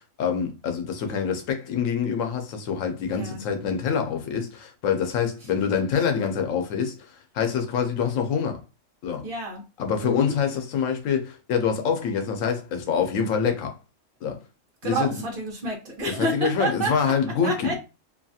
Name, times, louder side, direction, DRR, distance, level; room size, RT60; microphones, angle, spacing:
voice 1, 0.2-8.6 9.0-9.3 9.8-13.7 14.2-14.4 14.8-15.2 16.1-17.7, left 6 dB, 90° left, 1.0 m, -26 dB
voice 2, 9.2-9.6 10.0-10.3 14.8-17.1 17.4-17.7, right 2 dB, 45° right, 1.1 m, -29 dB
2.9 x 2.3 x 2.6 m
omnidirectional pair, 1.3 m